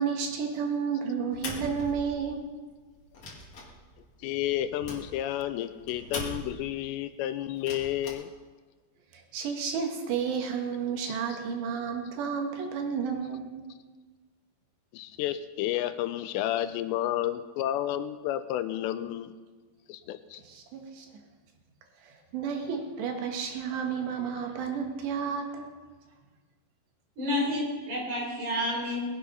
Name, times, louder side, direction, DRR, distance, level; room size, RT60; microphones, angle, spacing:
voice 1, 0.0-2.4 9.1-13.6 20.4-21.1 22.0-25.7, right 6 dB, 75° right, 3 dB, 3.5 m, -31 dB
sound 1, 1.3-2.5 2.9-6.8 7.5-8.1, left 1 dB, 45° left, 2.5 m, -41 dB
voice 2, 4.2-8.3 11.1-11.2 14.9-19.3 19.9-20.4, left 12 dB, 85° left, 11 dB, 2.7 m, -31 dB
voice 3, 27.2-29.0, left 1 dB, 45° right, -3 dB, 5.5 m, -29 dB
20.0 x 8.8 x 5.5 m, 1.3 s
omnidirectional pair, 5.1 m